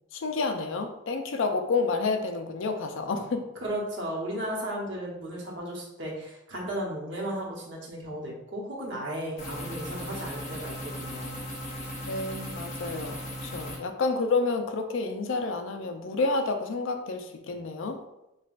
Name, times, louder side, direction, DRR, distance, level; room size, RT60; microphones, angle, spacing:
voice 1, 0.1-3.4 12.0-18.0, left 3 dB, 70° left, 5 dB, 0.4 m, -29 dB
voice 2, 3.6-11.4, right 1 dB, 60° right, -3 dB, 1.0 m, -35 dB
sound 1, 9.4-13.8, equal, 35° left, 0.8 m, -37 dB
5.4 x 2.3 x 2.5 m, 0.90 s
head